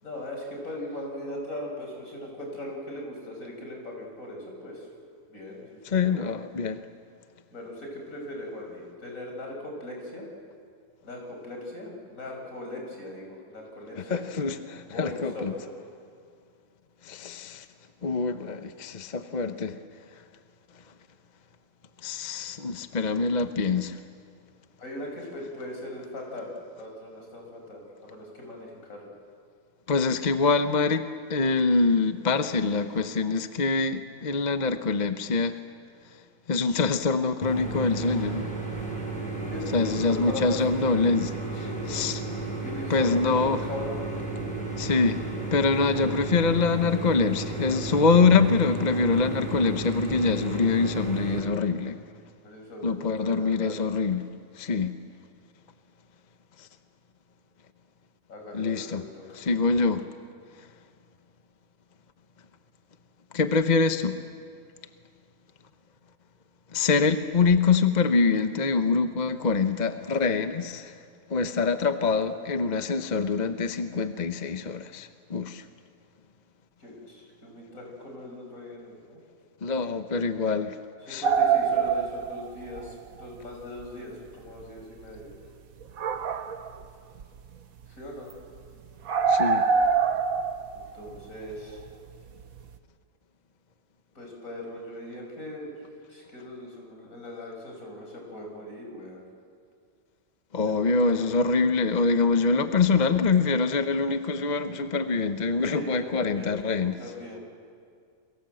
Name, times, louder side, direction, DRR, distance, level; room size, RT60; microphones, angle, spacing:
voice 1, 0.0-4.8 5.3-6.3 7.5-10.3 11.0-14.2 14.9-15.7 24.8-29.1 39.5-40.6 40.9-41.0 41.6-41.9 42.6-44.2 52.4-53.8 58.3-59.4 76.8-79.2 81.1-85.3 87.9-88.3 90.7-91.8 94.1-95.7 96.1-99.2 100.6-101.3 105.7-107.4, left 1 dB, 70° left, 0 dB, 6.2 m, -39 dB
voice 2, 5.8-6.8 14.0-15.5 17.0-17.7 18.0-19.8 22.0-24.0 29.9-35.6 36.5-38.5 39.7-42.2 42.9-43.6 44.8-45.2 45.5-52.0 52.8-55.0 56.6-56.7 58.5-59.1 59.3-60.1 63.3-64.2 66.7-71.0 71.3-75.6 79.6-80.8 81.1-81.2 89.3-89.7 100.5-107.0, left 4 dB, 35° left, 9 dB, 0.9 m, -25 dB
sound 1, 37.4-51.4, right 3 dB, 5° left, 6.1 m, -33 dB
sound 2, 81.2-82.9 83.2-83.3 83.8-83.9 84.6-84.7 85.8-86.8 87.2-87.5 87.8-87.9 88.3-88.4 88.6-88.7 89.0-92.1 92.4-92.7, right 6 dB, 85° right, 1.5 m, -25 dB
28.5 x 23.0 x 7.8 m, 2.2 s
omnidirectional pair, 1.5 m